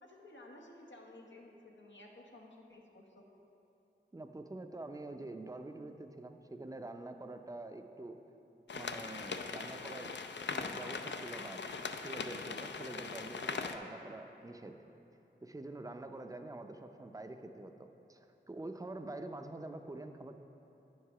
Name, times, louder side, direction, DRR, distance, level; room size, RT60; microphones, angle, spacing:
voice 1, 0.0-3.2, left 1 dB, 90° left, -1 dB, 1.0 m, -55 dB
voice 2, 4.1-8.2 8.7-10.1 10.5-14.8 15.4-20.4, right 2 dB, 20° right, 6 dB, 0.5 m, -46 dB
sound 1, 8.7-13.8, left 5 dB, 70° left, 0.4 m, -40 dB
9.4 x 4.8 x 5.6 m, 2.9 s
wide cardioid pair, 70°, 19 cm